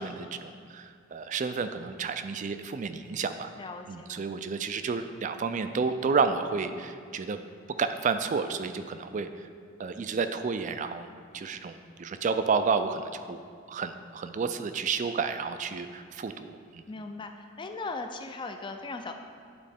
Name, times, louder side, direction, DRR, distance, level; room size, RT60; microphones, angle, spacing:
voice 1, 0.0-3.5 3.9-7.4 7.7-9.5 9.8-11.1 11.3-13.4 13.7-16.8, right 5 dB, 40° right, 9 dB, 0.3 m, -31 dB
voice 2, 3.6-4.3 16.9-17.3 17.6-19.1, left 3 dB, 25° left, 5 dB, 0.4 m, -38 dB
11.5 x 4.2 x 3.5 m, 2.2 s
head